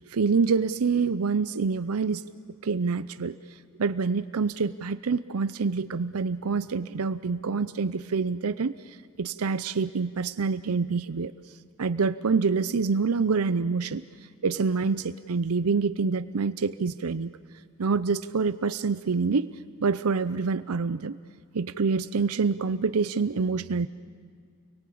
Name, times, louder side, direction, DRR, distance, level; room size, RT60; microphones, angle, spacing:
voice 1, 0.1-2.3 2.6-3.4 3.8-11.3 11.8-14.0 14.4-17.3 17.8-21.2 21.5-23.9, right 4 dB, 85° right, 12 dB, 0.6 m, -26 dB
30.0 x 23.5 x 8.6 m, 2.1 s
head